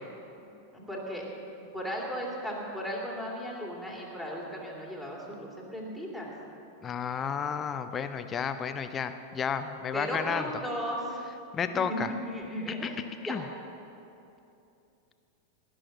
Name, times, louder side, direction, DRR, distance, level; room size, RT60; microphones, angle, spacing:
voice 1, 0.4-1.2 1.7-6.3 9.9-11.2 11.9-13.4, equal, 5° right, -3 dB, 2.9 m, -36 dB
voice 2, 6.8-10.5 11.5-12.1 13.2-13.4, left 7 dB, 25° left, 9 dB, 0.7 m, -32 dB
19.0 x 6.4 x 7.5 m, 2.7 s
figure-of-eight pair, 90°, 0 cm